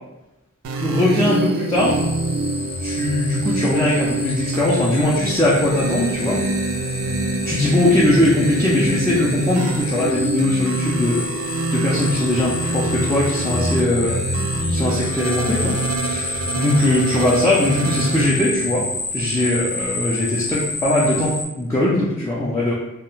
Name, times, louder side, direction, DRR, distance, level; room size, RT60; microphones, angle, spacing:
sound 1, 0.6-18.3, right 3 dB, 80° right, 0.3 m, -26 dB
voice 1, 0.8-2.0 2.8-6.4 7.5-11.3 11.7-14.2 14.7-18.9 19.1-22.7, left 1 dB, 15° left, -7 dB, 0.3 m, -20 dB
sound 2, 1.7-21.4, left 2 dB, 85° left, 0.5 m, -29 dB
2.3 x 2.1 x 3.0 m, 0.92 s
head